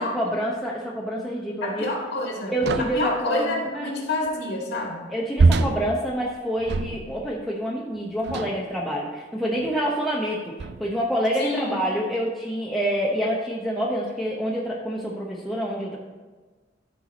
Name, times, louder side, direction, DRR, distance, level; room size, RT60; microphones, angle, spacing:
voice 1, 0.0-1.9 2.5-3.9 5.1-16.0, equal, ahead, -5 dB, 0.8 m, -27 dB
voice 2, 1.6-5.0 11.4-11.8, left 2 dB, 65° left, -1 dB, 1.9 m, -28 dB
sound 1, 2.6-3.1 5.4-7.3 8.2-8.7 9.6-9.7 10.6-11.0, right 3 dB, 60° right, 0.4 m, -24 dB
13.5 x 4.6 x 4.1 m, 1.4 s
head